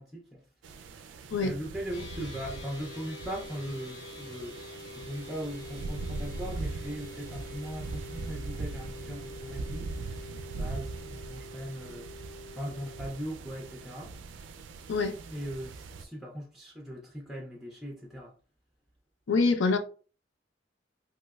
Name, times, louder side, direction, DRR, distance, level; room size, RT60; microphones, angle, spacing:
voice 1, 0.0-14.1 15.2-18.3, equal, ahead, 0.4 m, -40 dB
sound 1, 0.6-16.0, right 3 dB, 75° right, 0.3 m, -41 dB
sound 2, 1.9-13.0, left 1 dB, 60° left, 0.9 m, -46 dB
voice 2, 19.3-19.8, left 4 dB, 75° left, 0.5 m, -25 dB
3.1 x 2.8 x 2.3 m
head